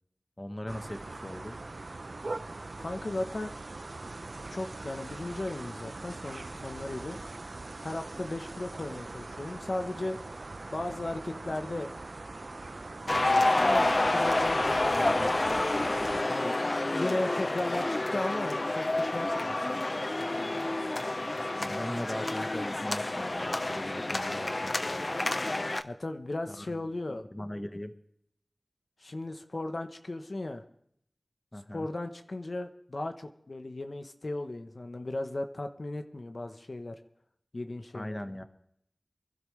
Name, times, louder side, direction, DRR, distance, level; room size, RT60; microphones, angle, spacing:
voice 1, 0.4-1.6 21.5-25.2 26.5-26.7 27.3-27.9 31.5-31.9 37.9-38.4, left 1 dB, 25° left, 8 dB, 1.0 m, -39 dB
sound 1, 0.7-16.2, right 2 dB, 65° right, 0.5 m, -42 dB
voice 2, 2.8-3.5 4.5-7.2 7.8-10.2 10.7-11.9 13.0-15.3 16.2-16.6 16.9-19.6 25.8-27.2 29.0-30.6 31.7-37.0 37.5-38.2, left 2 dB, 60° left, 7 dB, 0.9 m, -36 dB
sound 2, 13.1-25.8, left 2 dB, 45° left, 0.5 m, -29 dB
24.0 x 12.0 x 3.2 m, 0.70 s
wide cardioid pair, 65°, 0 cm